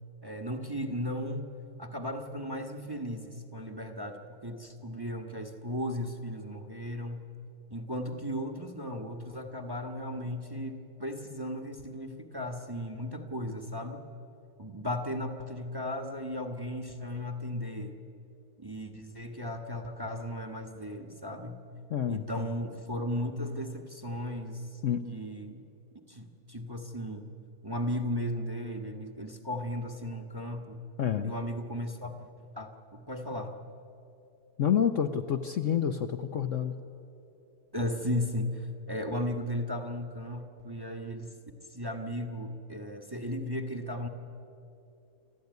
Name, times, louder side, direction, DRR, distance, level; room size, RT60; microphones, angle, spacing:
voice 1, 0.2-7.3 7.7-14.0 14.6-18.0 18.6-21.6 22.1-24.8 25.0-25.6 26.1-27.3 27.6-30.8 31.2-32.3 32.6-33.5 37.7-41.3 41.7-44.1, left 1 dB, 15° right, 5 dB, 1.2 m, -36 dB
voice 2, 21.9-22.5 24.8-25.1 31.0-31.3 34.6-36.8, left 8 dB, 55° left, 7 dB, 1.0 m, -28 dB
28.0 x 13.5 x 9.4 m, 2.7 s
omnidirectional pair, 1.8 m